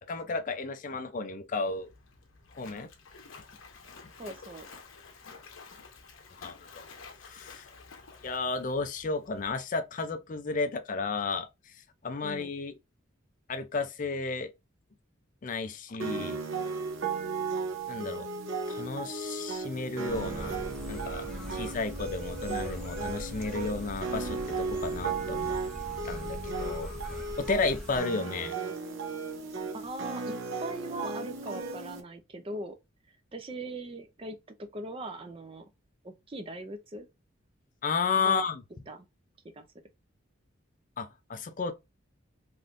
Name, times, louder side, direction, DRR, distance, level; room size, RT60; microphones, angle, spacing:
voice 1, 0.1-1.9 2.5-2.9 6.4-6.8 7.2-7.7 8.2-11.7 12.0-12.7 13.5-14.5 15.4-16.4 17.9-18.3 18.7-20.6 20.9-25.6 26.0-28.5 37.8-38.6 41.0-41.7, left 4 dB, 40° left, 0.4 m, -33 dB
Splash splatter, 1.6-9.5, left 4 dB, 70° left, 0.8 m, -51 dB
voice 2, 4.2-4.7 12.2-12.5 21.2-21.8 29.7-32.8 33.3-35.7 36.0-37.1 38.2-38.5 38.9-39.1 39.5-39.6, right 2 dB, 25° right, 0.4 m, -40 dB
sound 1, 16.0-32.0, right 4 dB, 70° right, 0.7 m, -35 dB
sound 2, 20.1-28.0, equal, 5° left, 0.7 m, -41 dB
3.5 x 2.6 x 2.5 m
head